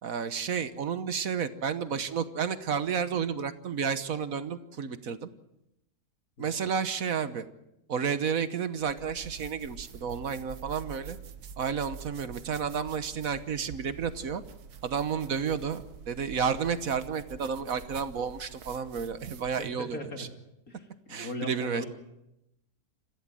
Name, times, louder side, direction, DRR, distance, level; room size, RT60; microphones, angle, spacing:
voice 1, 0.0-5.3 6.4-7.5 7.9-11.2 11.6-14.4 14.8-20.3 21.1-21.8, right 6 dB, 65° right, 11 dB, 1.5 m, -31 dB
sound 1, 8.8-19.8, right 6 dB, 90° right, 1.7 m, -46 dB
voice 2, 19.6-20.3 20.7-21.9, left 1 dB, 65° left, 3 dB, 3.2 m, -39 dB
27.0 x 15.5 x 7.6 m, 0.88 s
omnidirectional pair, 1.6 m